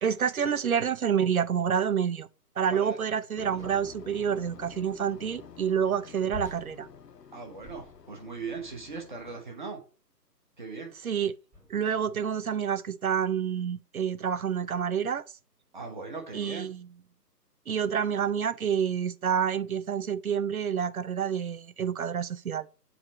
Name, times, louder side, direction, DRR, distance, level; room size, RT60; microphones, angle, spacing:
voice 1, 0.0-2.3 2.6-6.9 11.0-11.3 11.7-15.2 16.3-16.9 17.7-22.7, right 8 dB, 60° right, 0.5 m, -28 dB
sound 1, 3.4-9.4, left 7 dB, 75° left, 0.8 m, -49 dB
sound 2, 3.6-4.1 6.3-8.3 9.2-9.6 10.5-10.7 11.5-11.9, left 2 dB, 10° right, 1.4 m, -47 dB
voice 2, 7.3-9.8 10.6-10.9 15.7-16.7, right 4 dB, 30° right, 1.1 m, -39 dB
7.1 x 3.2 x 4.1 m
figure-of-eight pair, 150°, 50 cm